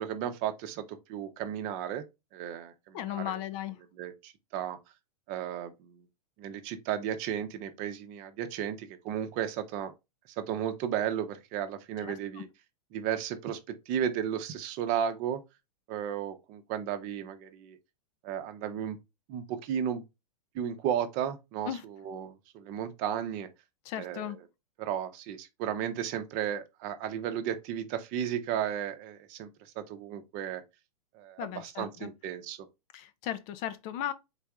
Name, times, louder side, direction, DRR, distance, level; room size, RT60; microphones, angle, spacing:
voice 1, 0.0-2.0 2.3-3.4 4.0-4.8 5.3-6.0 6.4-9.9 10.4-12.5 12.9-15.4 15.9-17.8 18.2-19.0 19.3-20.0 20.5-23.5 23.9-24.4 24.8-30.6 31.1-32.7, right 9 dB, 40° right, 0.8 m, -34 dB
voice 2, 2.9-3.8 12.0-12.4 21.6-21.8 23.9-24.4 31.4-31.9 32.9-34.1, left 11 dB, 35° left, 0.6 m, -36 dB
4.1 x 3.5 x 3.5 m
hypercardioid pair, 110°, 20 cm